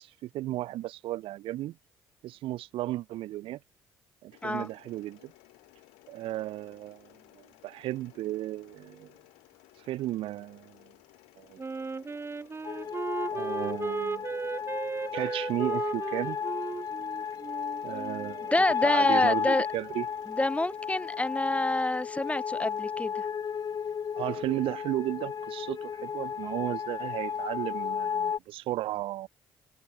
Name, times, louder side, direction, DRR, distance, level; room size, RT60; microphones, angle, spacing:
voice 1, 0.0-1.8 2.2-3.6 4.2-5.3 6.1-9.1 9.9-10.8 11.4-11.6 13.3-14.3 15.1-16.4 17.8-18.5 18.8-20.1 24.2-29.3, right 15 dB, 65° right, 1.4 m, -34 dB
Mechanisms, 4.3-22.8, left 30 dB, 75° left, 3.8 m, -58 dB
Wind instrument woodwind instrument, 11.6-18.3, right 4 dB, 25° right, 1.2 m, -35 dB
sound 1, 12.6-28.4, left 7 dB, 40° left, 0.7 m, -33 dB
voice 2, 18.5-19.7 20.4-23.2, left 2 dB, 15° left, 1.2 m, -27 dB
hypercardioid pair, 50°, 10 cm